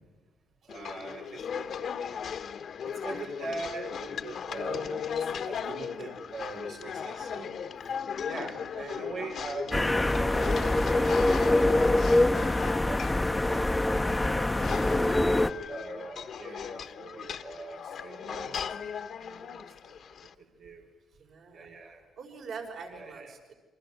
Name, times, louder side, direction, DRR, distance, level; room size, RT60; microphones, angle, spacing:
sound 1, 0.7-20.3, left 7 dB, 60° left, 1.2 m, -37 dB
voice 1, 0.7-1.9 2.8-5.2 5.5-7.5 7.8-7.9 8.2-10.6 11.0-14.2 15.0-19.9 20.6-20.9 21.5-22.0 22.9-23.3, right 3 dB, 90° right, -1 dB, 4.6 m, -42 dB
voice 2, 8.2-8.6 21.2-21.7 22.2-23.5, right 5 dB, 65° right, 2 dB, 5.4 m, -44 dB
sound 2, 9.7-15.5, left 2 dB, 10° left, 0.8 m, -24 dB
27.5 x 24.0 x 8.1 m, 1.2 s
cardioid pair, 90°, 0 cm